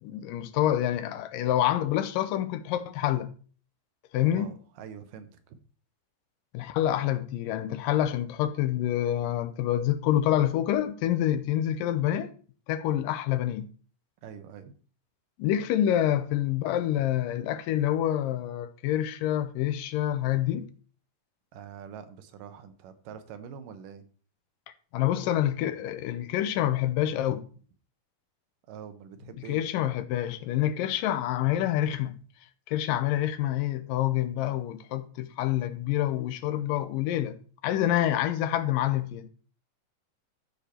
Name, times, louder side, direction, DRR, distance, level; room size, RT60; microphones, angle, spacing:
voice 1, 0.0-3.3 4.1-4.5 6.5-12.3 12.7-13.7 15.4-20.7 24.9-27.5 29.5-32.2 32.7-37.4 37.6-39.3, left 12 dB, 85° left, 2.4 m, -27 dB
voice 2, 4.3-5.6 14.2-14.8 21.5-24.0 28.7-29.6, right 7 dB, 80° right, 2.6 m, -45 dB
13.5 x 5.1 x 4.3 m
omnidirectional pair, 3.9 m